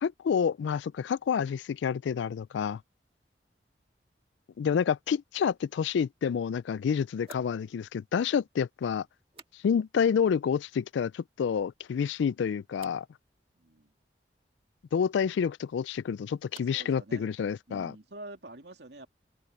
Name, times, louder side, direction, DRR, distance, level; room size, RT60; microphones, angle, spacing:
voice 1, 0.0-2.8 4.6-9.1 9.6-13.1 14.9-18.0, left 7 dB, 80° left, 0.3 m, -28 dB
sound 1, 7.2-10.1 10.3-10.9 11.3-11.9 12.7-13.1 15.5-17.0 17.2-17.8, right 5 dB, 30° right, 1.8 m, -57 dB
voice 2, 13.5-13.9 16.5-17.3 17.7-19.1, right 2 dB, 70° right, 2.7 m, -47 dB
open air
head